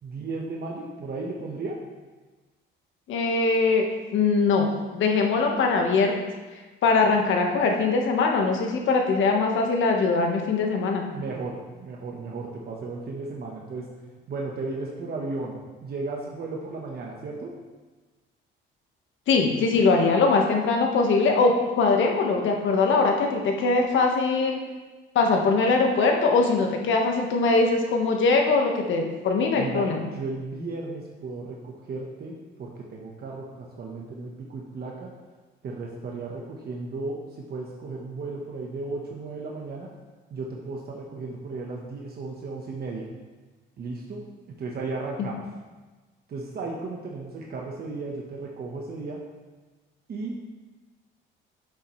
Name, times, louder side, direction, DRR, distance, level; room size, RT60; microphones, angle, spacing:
voice 1, 0.0-1.8 11.1-13.9 14.3-17.5 29.6-29.9 30.1-35.1 35.6-39.9 40.3-43.1 43.8-44.2 44.6-45.4 46.3-49.2 50.1-50.5, right 3 dB, 50° right, -1 dB, 1.2 m, -35 dB
voice 2, 3.1-3.8 4.1-6.1 6.8-11.1 19.3-24.6 25.1-30.0 45.2-45.3, left 4 dB, 70° left, 2 dB, 1.4 m, -22 dB
11.0 x 7.2 x 3.2 m, 1.3 s
cardioid pair, 120°, 21 cm